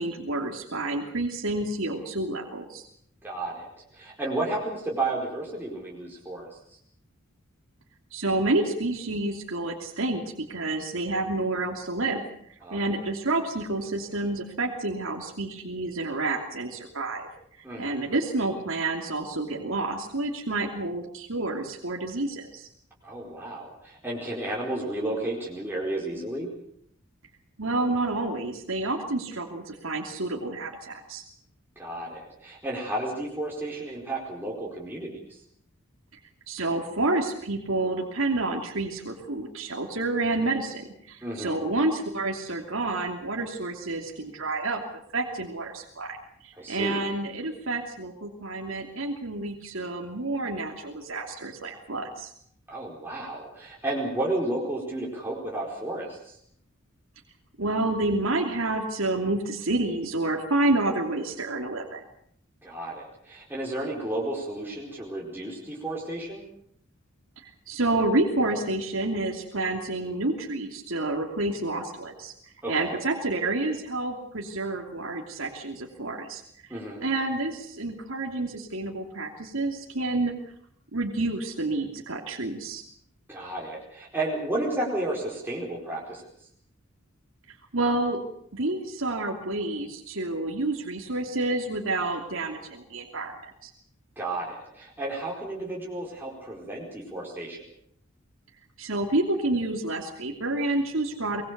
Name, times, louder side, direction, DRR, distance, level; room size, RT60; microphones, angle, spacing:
voice 1, 0.0-2.9 8.1-12.2 12.7-17.3 17.8-22.7 27.6-31.2 36.5-44.8 45.1-46.2 46.4-52.3 57.6-62.0 67.7-72.3 72.7-76.7 77.0-80.3 80.9-82.8 87.7-88.2 88.5-93.3 93.6-93.7 98.8-101.4, right 2 dB, 75° right, 1 dB, 3.0 m, -29 dB
voice 2, 3.2-6.5 12.6-13.0 17.6-18.0 23.0-26.5 31.8-35.4 41.2-41.6 46.6-47.0 52.7-56.4 62.6-66.4 72.6-73.0 76.7-77.0 83.3-86.2 94.2-97.6, right 2 dB, 10° right, -4 dB, 4.6 m, -32 dB
24.0 x 21.0 x 6.8 m, 0.69 s
head